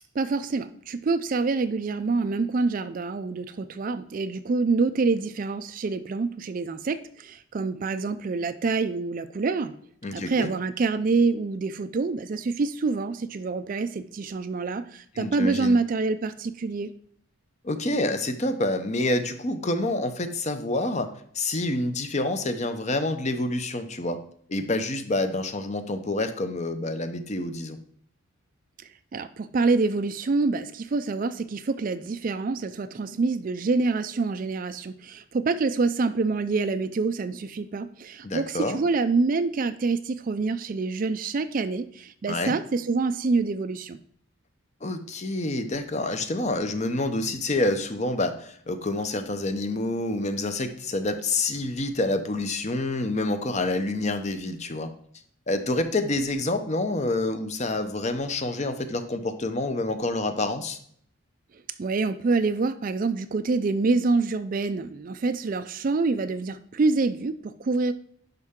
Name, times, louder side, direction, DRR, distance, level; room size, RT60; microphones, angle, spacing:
voice 1, 0.1-9.7 10.1-16.9 29.1-44.0 61.8-67.9, right 3 dB, 40° right, 11 dB, 0.4 m, -26 dB
voice 2, 10.0-10.5 15.2-15.8 17.6-24.2 24.5-27.8 38.2-38.8 42.3-42.5 44.8-54.9 55.5-60.8, left 2 dB, 35° left, 9 dB, 0.7 m, -27 dB
10.5 x 5.6 x 3.7 m, 0.64 s
head